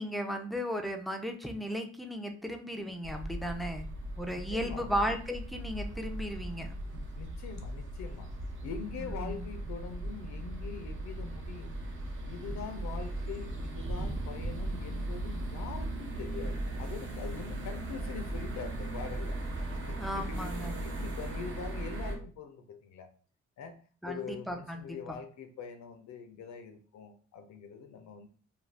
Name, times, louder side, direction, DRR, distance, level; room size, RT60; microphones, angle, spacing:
voice 1, 0.0-3.9 4.2-6.7 9.0-9.5 20.0-20.7 24.0-25.2, equal, ahead, 5 dB, 0.4 m, -35 dB
sound 1, 3.0-22.2, right 1 dB, 40° right, 0.8 m, -38 dB
voice 2, 4.5-5.0 7.1-8.3 8.6-11.8 12.2-19.4 19.8-23.1 23.6-23.8 24.1-28.3, left 6 dB, 65° left, 7 dB, 0.5 m, -43 dB
2.4 x 2.3 x 3.3 m, 0.41 s
cardioid pair, 90°, 30 cm